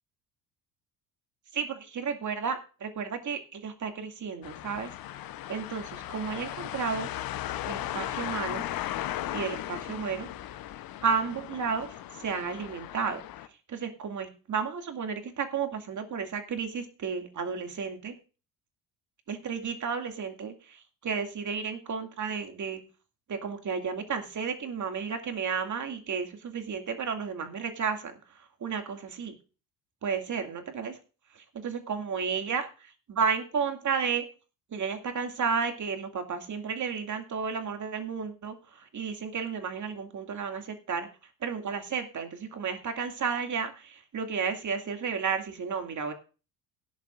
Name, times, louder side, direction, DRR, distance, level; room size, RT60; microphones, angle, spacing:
voice 1, 1.5-4.9 5.5-7.1 7.6-8.6 9.3-10.3 11.0-11.9 12.2-13.2 13.7-18.2 19.3-22.8 23.3-28.1 28.6-29.3 30.0-31.0 31.5-34.3 34.7-41.1 41.4-46.1, right 6 dB, 35° right, 5 dB, 2.5 m, -32 dB
sound 1, 4.4-13.5, left 13 dB, 45° left, 1.0 m, -37 dB
18.0 x 10.5 x 2.6 m, 0.34 s
hypercardioid pair, 60°, 49 cm